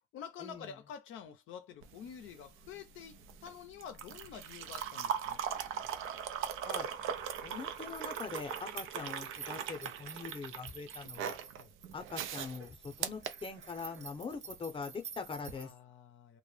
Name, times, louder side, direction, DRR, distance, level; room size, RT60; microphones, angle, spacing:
voice 1, 0.1-5.4 9.0-9.1 11.5-11.7 15.5-16.4, left 8 dB, 80° left, 0.5 m, -48 dB
sound 1, 1.8-14.1 15.4-15.6, right 8 dB, 90° right, 0.4 m, -40 dB
sound 2, 4.6-15.7, right 6 dB, 35° right, 0.5 m, -52 dB
voice 2, 7.4-11.4 11.9-15.7, left 5 dB, 25° left, 0.6 m, -43 dB
2.1 x 2.1 x 3.1 m
cardioid pair, 90°, 20 cm